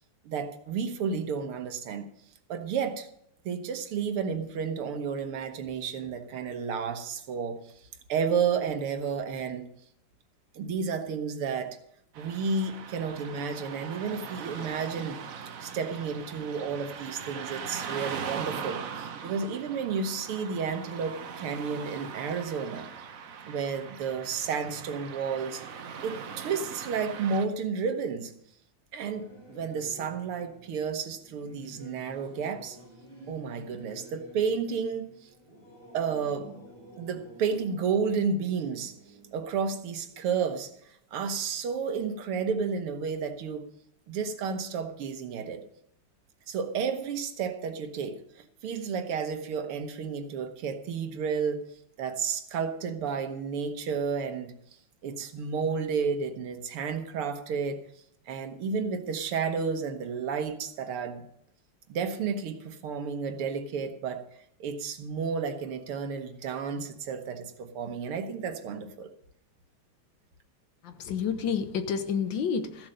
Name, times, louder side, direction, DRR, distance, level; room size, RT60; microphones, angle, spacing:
voice 1, 0.3-2.1 2.5-3.1 3.5-7.6 8.1-9.7 10.5-11.8 12.2-15.2 15.6-22.9 23.5-25.6 26.0-28.3 28.9-32.8 33.3-35.1 35.9-36.6 37.0-39.0 39.3-43.7 44.1-45.6 46.5-51.6 52.0-54.5 55.0-57.8 58.3-61.2 61.9-64.2 64.6-69.1, right 6 dB, 80° right, 8 dB, 2.1 m, -31 dB
Car passing by / Traffic noise roadway noise, 12.1-27.5, right 7 dB, 55° right, 0.9 m, -40 dB
Singing / Musical instrument, 29.1-41.0, equal, 25° left, 4.9 m, -52 dB
voice 2, 70.8-72.9, left 6 dB, 65° left, 10 dB, 1.4 m, -29 dB
14.5 x 7.5 x 6.5 m, 0.71 s
omnidirectional pair, 2.4 m